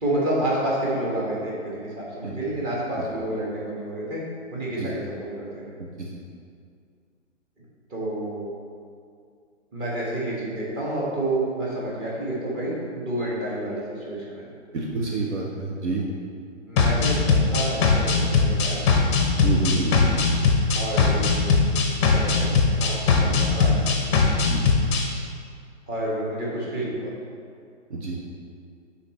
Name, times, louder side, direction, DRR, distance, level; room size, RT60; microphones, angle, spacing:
voice 1, 0.0-4.2 4.5-5.6 7.9-8.5 9.7-14.5 16.7-18.8 20.7-21.5 22.0-23.8 25.9-27.1, right 1 dB, 20° right, -5 dB, 1.6 m, -29 dB
voice 2, 14.7-16.0 19.4-20.1 23.2-23.3 24.5-24.6 27.9-28.2, right 3 dB, 65° right, -3 dB, 0.9 m, -28 dB
sound 1, 16.8-25.0, left 4 dB, 25° left, 0.6 m, -20 dB
10.0 x 4.1 x 3.2 m, 2.3 s
figure-of-eight pair, 125°, 37 cm